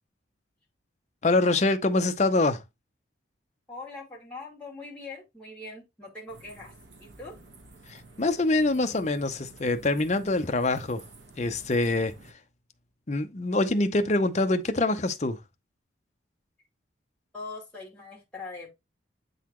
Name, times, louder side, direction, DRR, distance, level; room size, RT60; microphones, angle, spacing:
voice 1, 1.2-2.6 7.9-11.0 11.4-12.1 13.1-15.4, left 2 dB, 35° left, 0.6 m, -25 dB
voice 2, 3.7-6.7 7.0-7.4 17.3-18.7, left 3 dB, 5° left, 2.4 m, -42 dB
sound 1, 6.3-12.3, right 2 dB, 70° right, 1.4 m, -51 dB
8.4 x 4.0 x 3.1 m
head